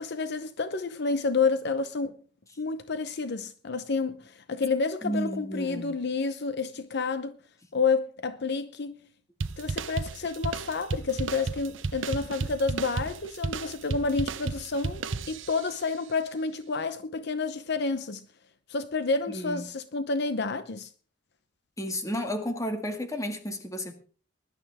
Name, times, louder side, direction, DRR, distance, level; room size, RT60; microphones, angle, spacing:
voice 1, 0.0-2.2 2.6-7.4 7.7-9.1 9.6-18.2 18.7-20.9, left 4 dB, 60° left, 0.8 m, -29 dB
voice 2, 5.0-6.0 19.3-19.6 21.8-23.9, equal, 15° left, 2.1 m, -32 dB
sound 1, 9.4-15.8, right 4 dB, 75° right, 0.7 m, -33 dB
20.0 x 11.5 x 3.6 m
head